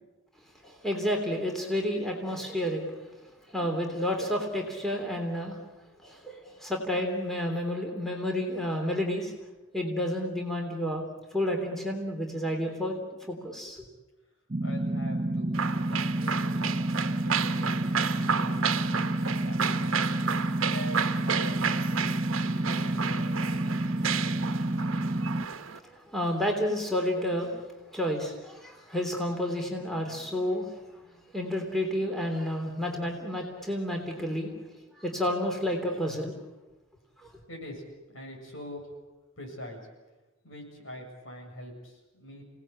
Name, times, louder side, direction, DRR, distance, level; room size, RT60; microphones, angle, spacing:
voice 1, 0.6-2.9 3.5-5.6 6.0-9.3 9.7-11.0 11.3-13.0 13.3-13.8 25.8-27.7 27.9-30.8 31.3-34.5 35.0-36.3 37.2-37.3, left 1 dB, ahead, 1 dB, 3.4 m, -30 dB
sound 1, 14.5-25.5, right 1 dB, 35° right, 0.8 m, -29 dB
voice 2, 14.6-16.7 17.0-20.0 20.6-22.0 22.4-24.4 37.5-37.8 38.1-38.8 39.4-39.8 40.4-42.5, equal, 75° left, 1 dB, 7.5 m, -44 dB
sound 2, 15.5-25.8, right 7 dB, 90° right, 1.1 m, -32 dB
27.0 x 18.5 x 8.8 m, 1.1 s
head